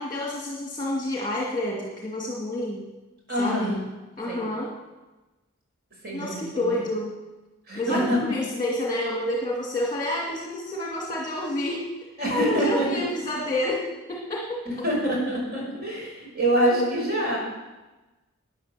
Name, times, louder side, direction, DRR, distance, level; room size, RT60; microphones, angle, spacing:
voice 1, 0.0-2.9 3.4-3.8 4.2-4.7 6.1-7.1 7.7-11.9 12.3-14.9 16.8-16.9, left 1 dB, 20° left, -3 dB, 2.2 m, -29 dB
voice 2, 3.3-3.8 4.3-4.5 6.0-6.8 7.7-8.2 12.2-13.0 14.7-17.4, right 1 dB, 50° right, -3 dB, 5.7 m, -25 dB
12.5 x 9.7 x 7.5 m, 1.1 s
head